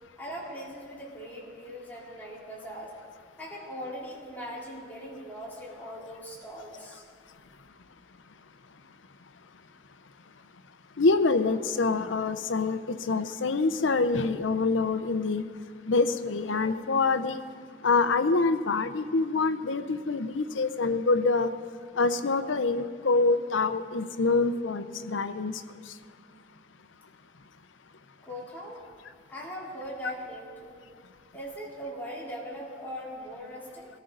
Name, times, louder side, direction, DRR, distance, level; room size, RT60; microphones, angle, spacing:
voice 1, 0.2-2.9 3.4-7.0 28.2-28.8 29.3-30.8 31.3-33.9, equal, 10° left, -6 dB, 3.7 m, -40 dB
voice 2, 11.0-12.8 13.1-15.4 15.9-17.4 17.8-21.5 22.0-25.6, left 3 dB, 85° left, 10 dB, 0.7 m, -25 dB
22.0 x 13.5 x 3.9 m, 2.2 s
head